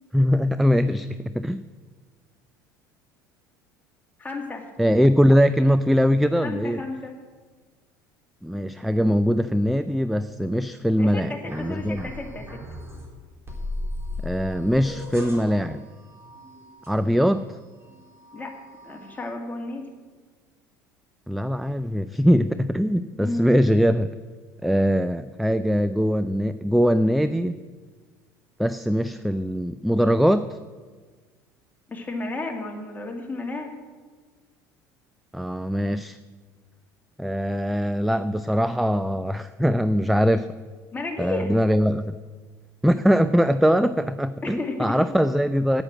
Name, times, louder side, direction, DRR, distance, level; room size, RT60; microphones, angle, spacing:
voice 1, 0.1-1.6 4.8-6.8 8.4-12.1 14.2-15.8 16.9-17.5 21.3-24.1 24.6-27.6 28.6-30.6 35.3-36.2 37.2-40.5 41.2-42.1 42.8-45.8, equal, ahead, 13 dB, 0.4 m, -22 dB
voice 2, 4.2-4.7 6.4-7.1 11.0-12.6 18.3-18.5 18.8-19.9 23.2-23.5 31.9-33.7 40.9-41.6 44.4-45.1, left 2 dB, 15° left, 1 dB, 2.3 m, -32 dB
sound 1, 11.5-13.1 13.5-17.5 17.8-19.3, left 2 dB, 25° right, 3.5 m, -37 dB
9.0 x 8.9 x 7.6 m, 1.5 s
hypercardioid pair, 70°, 10 cm